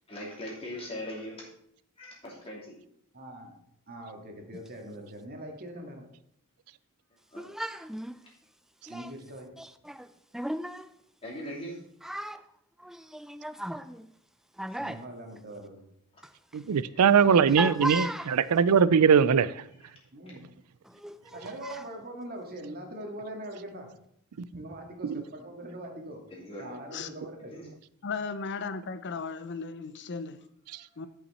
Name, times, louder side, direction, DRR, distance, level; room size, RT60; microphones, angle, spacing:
voice 1, 0.1-1.5 2.0-2.7 4.8-5.0 7.3-7.5 11.2-11.8 16.7-17.0 26.3-26.7 27.5-27.7, left 1 dB, 25° left, 2.9 m, -40 dB
voice 2, 3.1-3.6 3.9-6.1 8.9-9.6 14.8-15.8 20.1-20.4 21.3-24.0 24.5-26.2 26.6-27.5, right 1 dB, 45° right, 1.9 m, -42 dB
voice 3, 7.4-8.1 8.9-9.1 9.6-10.1 10.3-10.9 12.0-12.4 12.8-14.0 14.6-15.0 17.6-18.3 20.9-21.4 21.6-21.7, equal, ahead, 0.5 m, -35 dB
voice 4, 16.5-19.5 24.4-24.5 25.1-25.2, right 6 dB, 85° right, 0.4 m, -21 dB
voice 5, 28.0-30.4 31.0-31.1, left 4 dB, 50° left, 0.6 m, -35 dB
12.5 x 5.8 x 4.2 m
head